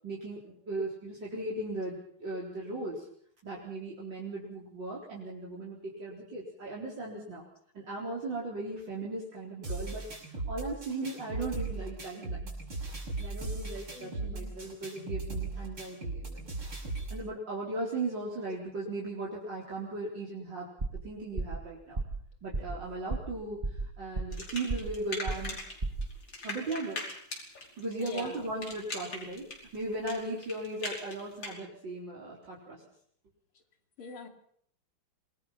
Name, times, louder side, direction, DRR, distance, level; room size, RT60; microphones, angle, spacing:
voice 1, 0.0-3.1 3.4-7.4 7.7-12.5 12.9-16.5 17.1-22.0 22.4-25.6 26.4-27.0 27.8-32.8, right 2 dB, 55° right, -5 dB, 4.9 m, -37 dB
sound 1, 9.6-17.2, right 3 dB, 85° right, 7.3 m, -37 dB
voice 2, 13.9-14.6 28.0-28.5 34.0-34.3, left 4 dB, 75° left, 5 dB, 3.5 m, -44 dB
sound 2, 20.8-21.1 21.4-21.6 22.0-22.2 22.5-22.8 23.1-23.4 23.6-24.4 24.7-25.0 25.3-25.6 25.8-26.1, right 2 dB, 25° right, 2.3 m, -33 dB
sound 3, 24.3-25.7 26.0-31.5, left 2 dB, 60° left, 5.9 m, -40 dB
26.5 x 20.5 x 5.8 m, 0.64 s
omnidirectional pair, 2.3 m